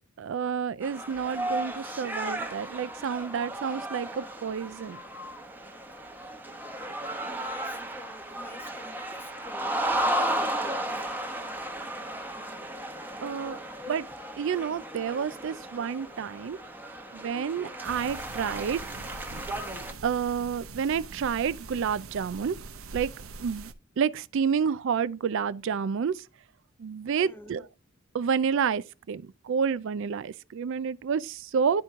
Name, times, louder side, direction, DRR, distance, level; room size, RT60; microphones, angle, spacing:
voice 1, 0.2-5.0 13.2-13.6 13.9-14.1 14.4-16.6 17.1-18.8 20.0-22.6 22.9-23.1 23.4-23.7 24.0-26.2 26.8-27.7 28.1-31.8, right 6 dB, 65° right, 0.4 m, -29 dB
sound 1, 0.8-19.9, right 1 dB, 10° right, 1.0 m, -34 dB
voice 2, 7.2-11.0 27.2-27.6, left 1 dB, 10° left, 0.6 m, -48 dB
sound 2, 17.8-23.7, right 4 dB, 80° right, 0.8 m, -43 dB
10.5 x 4.5 x 3.6 m
head